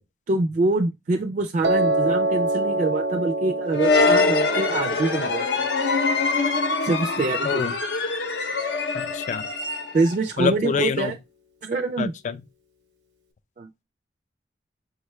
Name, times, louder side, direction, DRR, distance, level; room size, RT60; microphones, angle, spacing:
voice 1, 0.3-5.5 6.8-7.7 9.9-11.1 11.6-12.1 13.6-13.8, right 3 dB, 45° right, 0.3 m, -25 dB
Piano, 1.6-7.8, right 2 dB, 90° right, 0.8 m, -27 dB
sound 1, 3.7-10.2, left 3 dB, 85° left, 0.6 m, -23 dB
voice 2, 8.9-9.5 10.4-11.1 12.0-12.4, left 6 dB, 45° left, 0.3 m, -26 dB
4.7 x 2.3 x 3.0 m
head